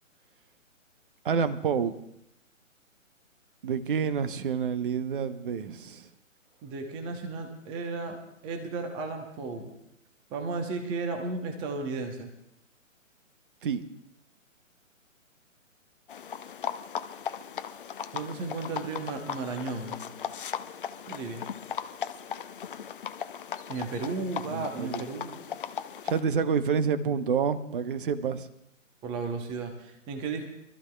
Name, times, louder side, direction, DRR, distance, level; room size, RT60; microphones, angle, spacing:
voice 1, 1.2-1.9 3.6-6.1 13.6-13.8 24.5-25.0 26.0-28.5, right 6 dB, 40° right, 12 dB, 0.9 m, -28 dB
voice 2, 6.6-9.7 10.3-12.3 18.1-20.0 21.1-21.4 23.7-25.4 29.0-30.5, right 3 dB, 10° right, 4 dB, 0.9 m, -34 dB
sound 1, 16.1-26.2, left 8 dB, 40° left, 0.5 m, -37 dB
25.0 x 13.5 x 2.3 m, 0.78 s
hypercardioid pair, 145°, 40 cm